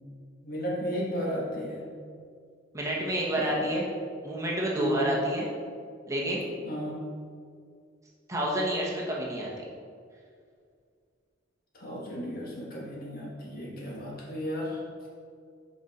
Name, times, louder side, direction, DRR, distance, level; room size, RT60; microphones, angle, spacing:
voice 1, 0.4-1.8 3.4-3.7 4.8-5.1 6.6-7.0 11.7-14.8, equal, 50° left, -4 dB, 1.7 m, -34 dB
voice 2, 2.7-3.9 4.2-5.5 6.1-6.4 8.3-9.5, right 1 dB, 15° right, -4 dB, 1.2 m, -29 dB
8.4 x 5.2 x 4.3 m, 2.2 s
head